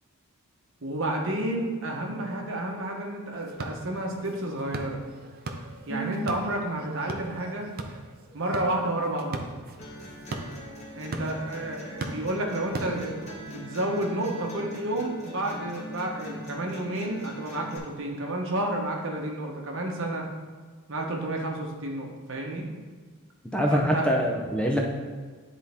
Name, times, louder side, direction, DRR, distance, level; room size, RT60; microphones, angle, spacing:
voice 1, 0.8-5.0 5.9-7.7 8.3-9.4 10.9-20.3 20.9-22.7 23.7-24.3, right 1 dB, 60° right, 1 dB, 1.1 m, -31 dB
sound 1, 3.3-13.5, right 2 dB, 45° right, 0.6 m, -40 dB
voice 2, 5.9-6.2 23.5-24.8, equal, 5° left, -1 dB, 0.5 m, -25 dB
sound 2, 9.8-17.8, equal, 30° left, 1.2 m, -42 dB
10.0 x 4.1 x 3.5 m, 1.5 s
head